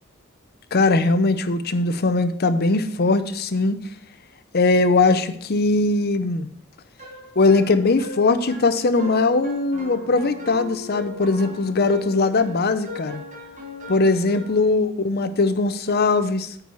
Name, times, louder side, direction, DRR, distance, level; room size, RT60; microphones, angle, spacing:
voice 1, 0.7-3.8 4.5-6.5 7.4-13.2 13.9-16.5, left 3 dB, 50° left, 11 dB, 0.7 m, -20 dB
sound 1, 7.0-14.7, left 1 dB, 40° right, 2.0 m, -38 dB
8.6 x 4.8 x 6.9 m, 0.67 s
head